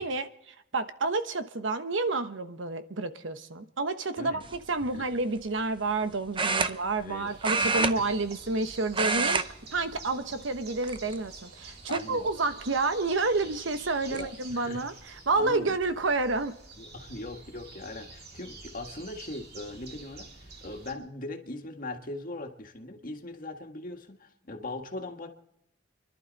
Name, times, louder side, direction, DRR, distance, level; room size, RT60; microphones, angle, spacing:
voice 1, 0.0-4.4 4.7-9.4 9.7-16.5, right 3 dB, 85° right, 1.1 m, -29 dB
sound 1, 4.4-4.7 6.3-7.1 7.4-8.6 8.9-9.5 9.8-10.0 10.8-11.3 11.9-12.0 13.5-13.6 13.9-14.3, right 4 dB, 25° right, 0.7 m, -28 dB
voice 2, 7.0-7.3 7.6-8.1 11.9-12.3 14.1-14.9 15.4-15.7 16.8-25.3, left 2 dB, 45° left, 1.8 m, -40 dB
sound 2, 7.2-20.9, right 3 dB, 55° right, 2.6 m, -48 dB
28.5 x 11.5 x 4.1 m
head